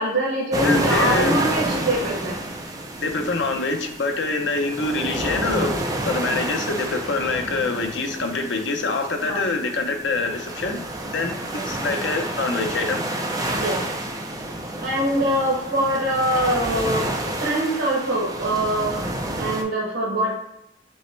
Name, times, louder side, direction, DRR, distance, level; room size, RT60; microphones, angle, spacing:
voice 1, 0.0-2.4 9.2-9.5 11.6-11.7 13.6-13.8 14.8-19.1 19.4-20.3, right 1 dB, 85° right, -5 dB, 1.2 m, -23 dB
sound 1, 0.5-19.6, right 1 dB, 20° right, 0.4 m, -29 dB
voice 2, 0.6-1.4 3.0-5.8 6.0-10.8 11.1-13.1, left 3 dB, 80° left, 5 dB, 0.6 m, -25 dB
5.4 x 2.1 x 3.2 m, 0.84 s
head